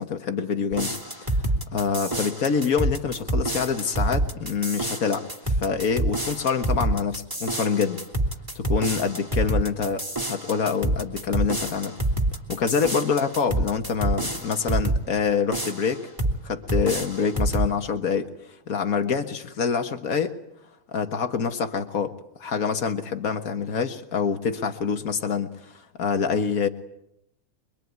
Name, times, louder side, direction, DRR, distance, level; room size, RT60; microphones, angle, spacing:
voice 1, 0.0-1.4 1.7-8.0 8.5-10.0 10.3-12.0 12.5-16.0 16.4-18.3 18.7-20.4 20.9-22.1 22.4-26.7, left 6 dB, 80° left, 6 dB, 0.7 m, -26 dB
sound 1, 0.7-15.0 15.5-16.4 16.7-17.7, right 1 dB, 5° right, 2.2 m, -27 dB
24.5 x 24.0 x 9.4 m, 0.80 s
omnidirectional pair, 3.7 m